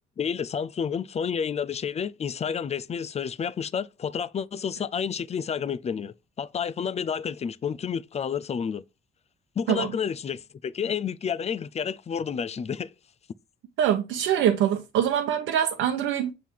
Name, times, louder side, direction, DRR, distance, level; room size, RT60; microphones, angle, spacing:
voice 1, 0.2-8.8 9.6-12.9, left 7 dB, 35° left, 0.5 m, -30 dB
voice 2, 13.8-16.3, right 10 dB, 90° right, 0.9 m, -24 dB
7.5 x 3.7 x 4.6 m
cardioid pair, 90°, 20 cm